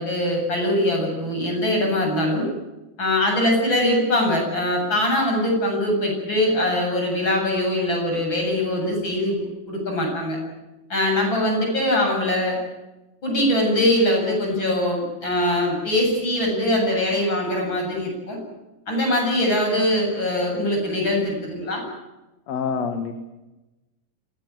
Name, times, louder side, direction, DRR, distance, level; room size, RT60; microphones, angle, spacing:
voice 1, 0.0-2.5 3.0-10.4 10.9-12.6 13.2-18.4 18.9-21.8, left 1 dB, 35° left, 1 dB, 8.4 m, -22 dB
voice 2, 22.5-23.1, left 6 dB, 60° left, 7 dB, 2.6 m, -26 dB
27.0 x 17.0 x 9.1 m, 1.1 s
omnidirectional pair, 3.6 m